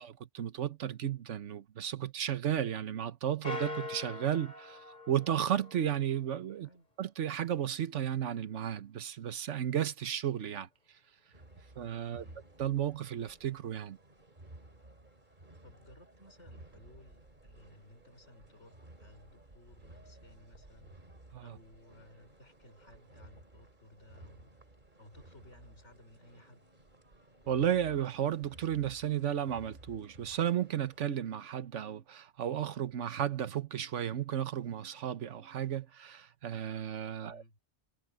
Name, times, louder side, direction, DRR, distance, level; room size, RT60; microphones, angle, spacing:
voice 1, 0.0-6.7 7.0-10.7 11.8-12.2 12.6-14.0 21.3-21.6 27.5-37.4, right 10 dB, 85° right, 1.3 m, -33 dB
sound 1, 3.4-6.1, left 3 dB, 40° left, 2.9 m, -42 dB
voice 2, 6.6-6.9 12.1-12.5 15.6-21.0 21.4-24.6 25.0-26.6 37.2-37.6, left 1 dB, 80° left, 5.8 m, -58 dB
sound 2, 11.3-31.1, right 2 dB, 40° right, 3.2 m, -56 dB
omnidirectional pair, 1.2 m